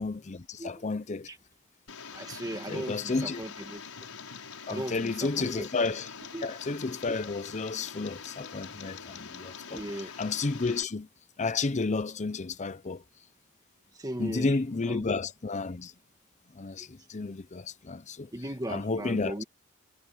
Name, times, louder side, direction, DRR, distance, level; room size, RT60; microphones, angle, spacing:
voice 1, 0.0-1.3 2.7-3.4 4.7-6.1 6.4-11.1 11.4-13.0 14.2-15.9 16.5-18.3 18.7-19.4, left 3 dB, 30° left, 0.6 m, -32 dB
Tick, 1.9-10.8, left 6 dB, 80° left, 6.0 m, -44 dB
voice 2, 2.1-3.8 4.7-5.7 6.3-6.5 9.7-10.1 13.9-14.6 14.9-15.1 16.8-16.9 18.3-19.4, right 1 dB, 15° right, 1.6 m, -37 dB
head